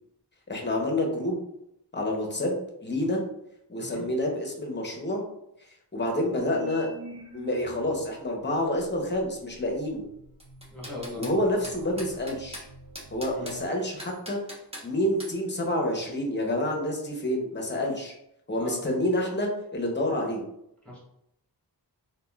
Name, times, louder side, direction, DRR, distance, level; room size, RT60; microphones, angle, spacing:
voice 1, 0.5-1.4 1.9-3.2 3.7-5.2 5.9-6.9 7.3-10.1 11.1-12.6 13.1-14.4 14.8-18.1 18.5-20.4, left 1 dB, 25° left, 0 dB, 0.7 m, -28 dB
sound 1, 6.4-8.0 8.7-13.7, right 1 dB, 60° right, 0.6 m, -47 dB
sound 2, 10.4-11.4 11.6-12.6 13.0-13.6 14.0-14.9 15.2-15.3, equal, 15° right, 0.8 m, -40 dB
voice 2, 10.7-11.2 13.3-13.5 18.6-18.8 20.8-21.0, left 1 dB, 5° left, -6 dB, 1.3 m, -39 dB
3.5 x 2.3 x 2.2 m, 0.78 s
wide cardioid pair, 65°, 42 cm